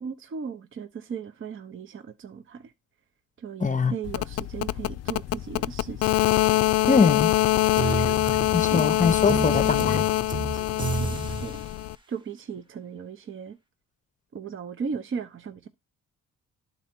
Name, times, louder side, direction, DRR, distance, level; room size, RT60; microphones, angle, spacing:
voice 1, 0.0-2.7 3.4-6.2 8.7-8.9 11.0-11.6 12.1-13.6 14.3-15.7, right 6 dB, 40° right, 0.8 m, -37 dB
voice 2, 3.6-3.9 6.9-7.3 8.5-10.1, left 5 dB, 25° left, 0.7 m, -22 dB
sound 1, 4.0-11.9, left 15 dB, 55° left, 0.4 m, -24 dB
sound 2, 7.5-11.6, right 2 dB, 15° right, 1.1 m, -31 dB
11.5 x 4.1 x 4.4 m
cardioid pair, 90°, 30 cm